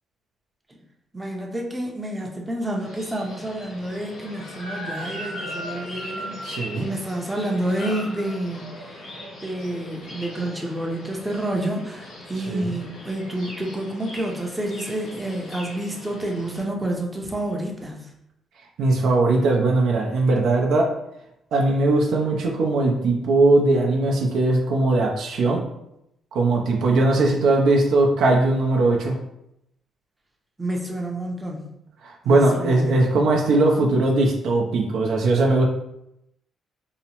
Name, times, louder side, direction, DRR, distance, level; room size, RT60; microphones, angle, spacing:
voice 1, 1.1-9.1 9.4-18.1 30.6-31.7 32.2-33.1, right 1 dB, 15° right, 0 dB, 0.5 m, -29 dB
sound 1, 2.6-16.6, left 1 dB, 90° left, 0.9 m, -38 dB
voice 2, 6.4-6.9 12.5-12.6 18.8-20.9 21.5-25.6 26.3-29.1 32.0-35.7, right 2 dB, 75° right, 0 dB, 0.4 m, -19 dB
2.8 x 2.0 x 2.8 m, 0.82 s
cardioid pair, 90°, 0 cm